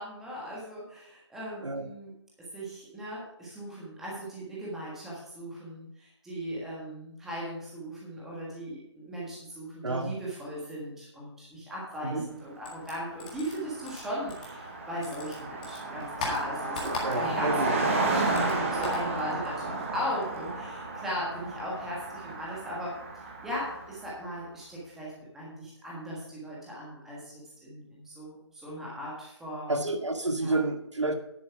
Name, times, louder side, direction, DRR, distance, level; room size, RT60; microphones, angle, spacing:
voice 1, 0.0-2.1 2.5-22.9 23.4-27.3 27.6-29.9 30.4-30.6, equal, 5° right, -6 dB, 1.5 m, -38 dB
voice 2, 9.8-10.1 12.0-12.3 17.0-17.7 29.7-31.1, right 2 dB, 85° right, 6 dB, 1.7 m, -30 dB
sound 1, 12.6-14.8 15.0-17.5 17.8-19.1, left 3 dB, 20° left, 1.8 m, -39 dB
Car passing by, 12.8-12.9 13.1-24.1, right 2 dB, 25° right, 1.4 m, -33 dB
10.5 x 7.6 x 4.7 m, 0.77 s
figure-of-eight pair, 165°, 15 cm